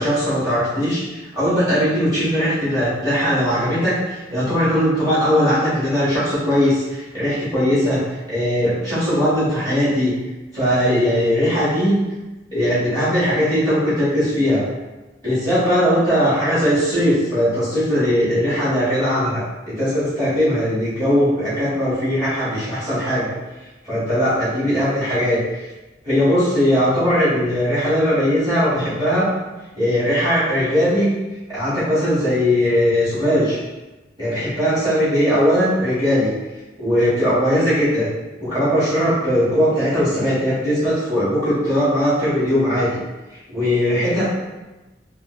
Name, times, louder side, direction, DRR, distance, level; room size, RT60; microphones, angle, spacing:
voice 1, 0.0-8.0 8.3-10.1 10.5-12.0 12.5-14.6 15.2-23.3 23.8-25.7 26.0-29.3 29.7-31.1 31.5-33.6 34.2-36.3 36.8-38.1 38.4-43.0 43.5-44.3, equal, 25° right, -13 dB, 1.5 m, -19 dB
3.3 x 2.4 x 3.0 m, 1.1 s
head